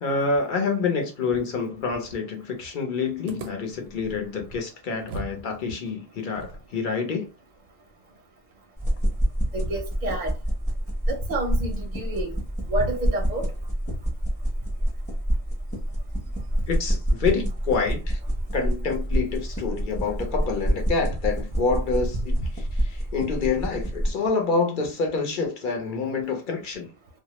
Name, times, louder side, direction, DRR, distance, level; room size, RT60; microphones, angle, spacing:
voice 1, 0.0-7.3 16.7-18.2 18.5-26.9, left 4 dB, 55° left, 0.7 m, -27 dB
sound 1, 3.3-5.4 5.7-5.8 6.3-9.5, right 3 dB, 90° right, 0.8 m, -43 dB
sound 2, 8.8-24.1, right 1 dB, 10° left, 0.6 m, -27 dB
voice 2, 9.5-10.3 11.1-13.5 22.4-22.5, right 1 dB, 55° right, 0.6 m, -29 dB
2.2 x 2.0 x 2.9 m
omnidirectional pair, 1.0 m